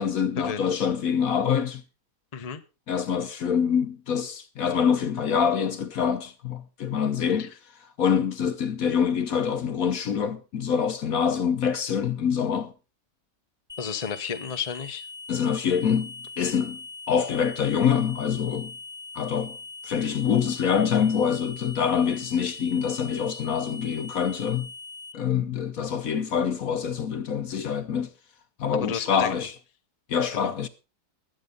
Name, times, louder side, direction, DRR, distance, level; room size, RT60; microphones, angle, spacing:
voice 1, 0.0-1.8 2.9-7.5 8.0-12.7 15.3-16.8 17.1-18.7 19.1-19.6 19.8-24.7 25.1-28.1 28.6-29.5 30.1-30.7, left 7 dB, 60° left, 1.2 m, -25 dB
sound 1, 13.7-25.1, left 3 dB, ahead, 1.6 m, -41 dB
voice 2, 13.8-15.1 28.7-29.3 30.3-30.5, left 7 dB, 30° left, 0.8 m, -32 dB
20.5 x 7.9 x 3.9 m
omnidirectional pair, 1.9 m